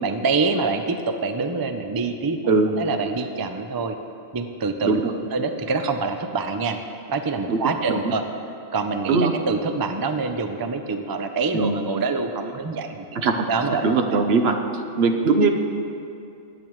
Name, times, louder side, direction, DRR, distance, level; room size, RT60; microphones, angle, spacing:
voice 1, 0.0-2.4 2.8-4.0 4.3-5.0 5.3-6.8 7.1-8.2 8.7-13.1 13.5-13.9, right 4 dB, 30° right, 7 dB, 0.4 m, -25 dB
voice 2, 13.8-14.5 15.0-15.5, right 4 dB, 65° right, 5 dB, 1.0 m, -19 dB
20.5 x 8.6 x 3.1 m, 2.6 s
omnidirectional pair, 1.2 m